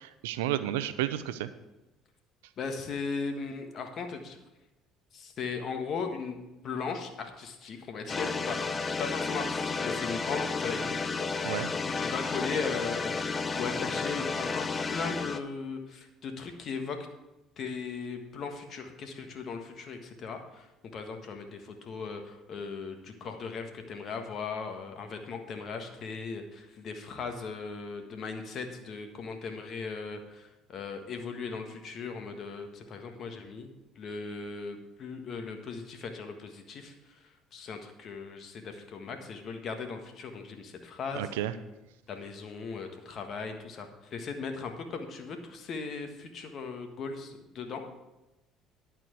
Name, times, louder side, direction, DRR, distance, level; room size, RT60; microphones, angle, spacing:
voice 1, 0.2-1.5 11.4-11.7 41.2-41.5, right 12 dB, 85° right, 13 dB, 0.5 m, -31 dB
voice 2, 2.6-4.4 5.1-6.4 6.6-10.9 11.8-17.1 17.6-20.7 20.9-33.7 33.9-37.2 37.5-41.3 42.1-47.8, left 5 dB, 55° left, 5 dB, 1.5 m, -38 dB
sound 1, 8.1-15.4, left 4 dB, 30° left, 0.7 m, -32 dB
11.0 x 4.5 x 8.0 m, 1.0 s
supercardioid pair, 70°, 0 cm